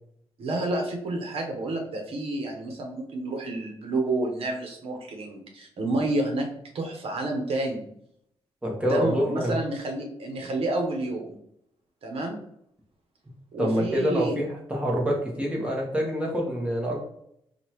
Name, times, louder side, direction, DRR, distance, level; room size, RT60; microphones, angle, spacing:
voice 1, 0.4-7.9 8.8-11.4 12.0-12.4 13.5-14.4, right 2 dB, 65° right, 2 dB, 1.0 m, -29 dB
voice 2, 8.6-9.6 13.6-17.0, equal, 10° right, -2 dB, 1.1 m, -26 dB
5.1 x 2.4 x 2.9 m, 0.73 s
wide cardioid pair, 150°, 10 cm